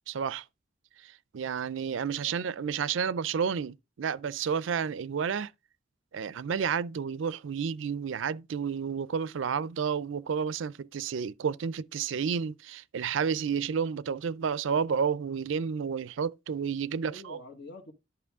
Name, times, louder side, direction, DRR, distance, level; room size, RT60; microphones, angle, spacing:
voice 1, 0.1-0.4 1.0-5.5 6.1-17.4, right 6 dB, 70° right, 0.4 m, -31 dB
voice 2, 2.1-2.8 17.0-17.9, left 2 dB, 60° left, 1.5 m, -48 dB
11.0 x 5.9 x 3.5 m
head